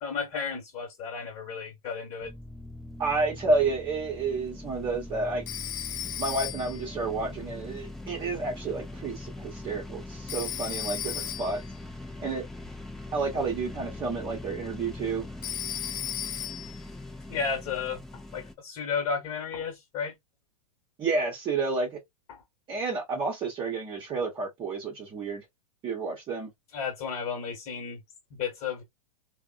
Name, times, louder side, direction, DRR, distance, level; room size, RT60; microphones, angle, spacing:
voice 1, 0.0-2.3 17.3-20.1 22.3-22.4 26.7-28.0 28.3-28.8, left 6 dB, 35° left, 1.1 m, -33 dB
sound 1, 2.2-18.5, left 2 dB, ahead, 0.4 m, -42 dB
voice 2, 3.0-5.4 6.2-11.6 12.2-12.4 13.1-15.3 21.0-22.0 22.7-25.4 25.8-26.5, right 3 dB, 25° right, 0.9 m, -30 dB
Telephone, 5.5-6.9 10.3-11.7 15.4-16.8, left 11 dB, 60° left, 0.6 m, -35 dB
3.3 x 2.1 x 2.3 m
hypercardioid pair, 110°, 19 cm